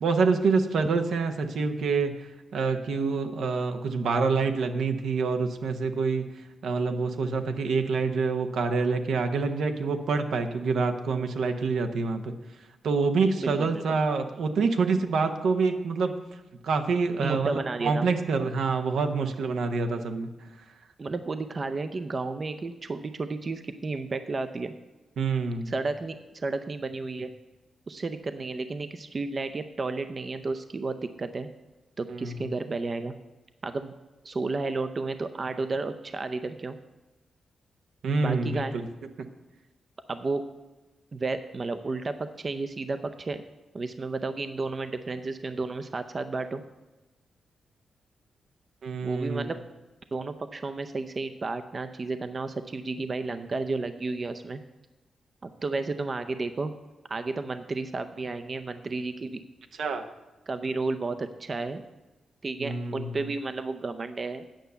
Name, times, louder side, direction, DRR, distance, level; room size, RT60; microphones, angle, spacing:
voice 1, 0.0-6.3 6.6-12.3 12.8-16.2 16.6-20.3 25.2-25.7 32.1-32.4 38.0-38.8 48.8-49.5 59.8-60.0 62.6-63.2, right 4 dB, 80° right, 6 dB, 0.9 m, -26 dB
voice 2, 13.4-14.0 17.2-18.1 21.0-24.7 25.7-27.3 27.9-31.5 32.0-33.1 33.6-33.9 34.2-36.8 38.2-38.8 40.1-40.4 41.1-43.4 43.7-46.6 49.0-49.6 50.1-54.6 55.4-56.7 57.1-59.4 60.5-61.8 62.4-64.4, right 3 dB, 40° right, 9 dB, 0.6 m, -32 dB
9.1 x 5.6 x 8.0 m, 1.1 s
cardioid pair, 80°, 0 cm